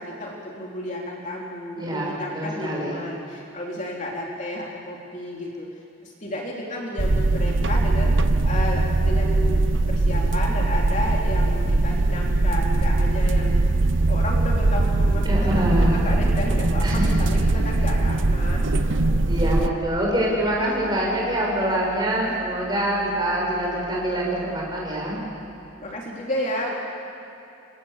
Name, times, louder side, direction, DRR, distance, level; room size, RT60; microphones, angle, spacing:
voice 1, 0.0-5.7 6.0-8.2 8.4-13.6 14.1-19.3 25.8-26.7, left 1 dB, 35° left, -2 dB, 3.5 m, -32 dB
voice 2, 1.7-3.0 15.2-16.1 16.8-17.1 19.3-25.2, right 1 dB, 20° right, -3 dB, 7.2 m, -25 dB
sound 1, 7.0-19.7, right 2 dB, 65° right, 0.9 m, -21 dB
sound 2, 14.0-25.9, left 1 dB, 40° right, 4.9 m, -34 dB
29.0 x 24.5 x 7.3 m, 2.8 s
head